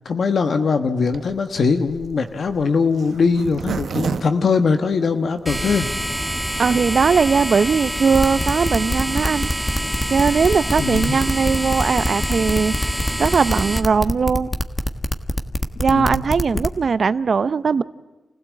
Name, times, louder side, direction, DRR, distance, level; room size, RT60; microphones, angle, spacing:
voice 1, 0.0-5.9 10.8-11.2 15.9-16.2, left 4 dB, 70° left, 7 dB, 1.3 m, -21 dB
Zipper (clothing), 1.1-5.4 5.9-6.0 6.2-6.3 6.5-6.8, right 6 dB, 80° right, 1.0 m, -30 dB
sound 1, 5.5-13.8, equal, ahead, 2.0 m, -26 dB
voice 2, 6.6-9.5 10.1-14.5 15.8-17.8, right 5 dB, 60° right, 16 dB, 0.6 m, -19 dB
sound 2, 8.1-16.8, left 1 dB, 15° left, 1.4 m, -24 dB
28.5 x 16.0 x 8.5 m, 1.2 s
wide cardioid pair, 90°, 0 cm